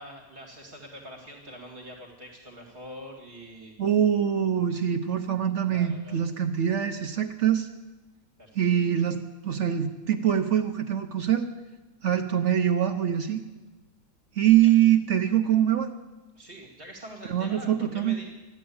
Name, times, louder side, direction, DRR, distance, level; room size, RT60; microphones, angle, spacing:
voice 1, 0.0-3.7 5.7-6.3 8.4-8.7 14.6-14.7 16.4-18.5, equal, 35° right, 0 dB, 2.4 m, -44 dB
voice 2, 3.8-7.7 8.5-11.5 12.0-13.4 14.4-15.9 17.3-18.2, right 10 dB, 60° right, 6 dB, 1.1 m, -24 dB
14.0 x 10.5 x 8.6 m, 1.1 s
omnidirectional pair, 1.5 m